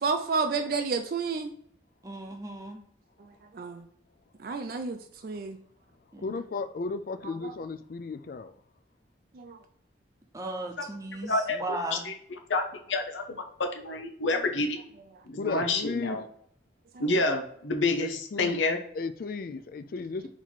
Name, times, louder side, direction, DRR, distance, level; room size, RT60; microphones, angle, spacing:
voice 1, 0.0-1.5 3.5-3.9 4.4-5.6 7.4-7.5 9.3-9.6 16.9-17.1, right 4 dB, 50° right, 6 dB, 0.4 m, -30 dB
voice 2, 2.0-2.8 6.1-6.3 10.3-12.1, right 2 dB, 15° right, 3 dB, 0.7 m, -36 dB
voice 3, 6.2-8.5 15.4-16.2 18.0-18.6 18.9-20.3, left 4 dB, 50° left, 10 dB, 0.3 m, -34 dB
voice 4, 11.3-14.8 15.3-16.2 17.0-18.8, left 2 dB, 80° left, 5 dB, 0.7 m, -29 dB
4.1 x 2.9 x 4.5 m, 0.64 s
head